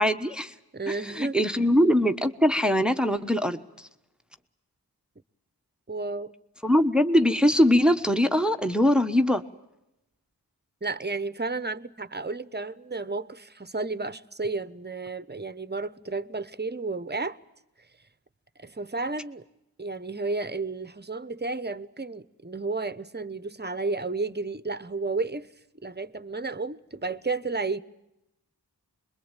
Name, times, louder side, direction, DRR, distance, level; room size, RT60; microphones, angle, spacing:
voice 1, 0.0-0.5 0.9-3.9 6.6-9.4, equal, ahead, 1.2 m, -22 dB
voice 2, 0.7-1.4 5.9-6.3 10.8-17.4 18.6-19.4 19.8-25.5 25.8-27.8, right 3 dB, 25° right, 1.0 m, -32 dB
26.0 x 22.0 x 9.0 m
wide cardioid pair, 55°, 41 cm